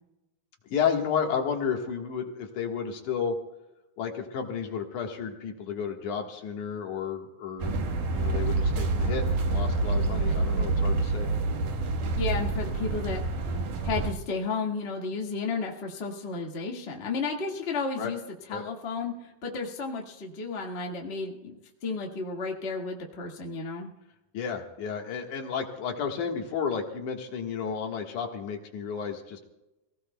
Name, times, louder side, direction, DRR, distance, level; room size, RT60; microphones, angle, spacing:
voice 1, 0.7-3.4 4.0-7.7 8.1-11.3 18.0-18.1 18.5-18.6 24.3-29.4, left 7 dB, 70° left, 2 dB, 3.0 m, -32 dB
sound 1, 7.6-14.1, right 3 dB, 70° right, 2.8 m, -27 dB
voice 2, 12.2-13.2 13.8-18.2 18.5-23.9, left 4 dB, 25° left, -1 dB, 1.5 m, -33 dB
27.5 x 17.5 x 2.3 m, 0.97 s
omnidirectional pair, 3.8 m